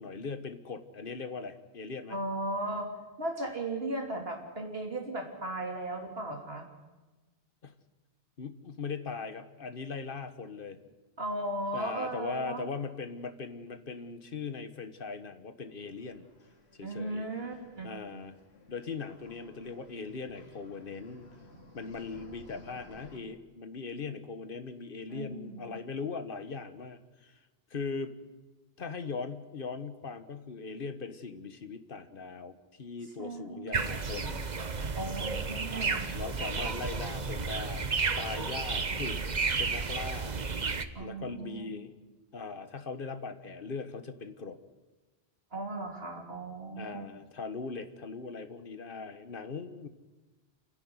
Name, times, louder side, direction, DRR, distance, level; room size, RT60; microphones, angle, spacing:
voice 1, 0.0-2.2 7.6-7.7 8.4-10.9 11.7-16.3 16.7-17.3 17.8-18.4 18.7-21.3 21.7-27.4 27.7-28.2 28.8-34.4 36.1-39.2 39.4-40.4 41.0-41.9 42.3-44.6 46.8-49.9, left 4 dB, 60° left, 10 dB, 1.5 m, -40 dB
voice 2, 2.1-2.9 3.2-6.7 11.2-12.7 16.8-17.9 25.1-25.8 33.2-33.9 34.9-36.2 40.9-41.7 45.5-47.0, right 1 dB, 70° right, 2 dB, 3.4 m, -36 dB
sound 1, 15.7-23.2, left 1 dB, 90° left, 3.8 m, -56 dB
sound 2, 33.7-40.8, right 4 dB, 45° right, 1.1 m, -32 dB
29.0 x 11.0 x 9.6 m, 1.2 s
omnidirectional pair, 1.0 m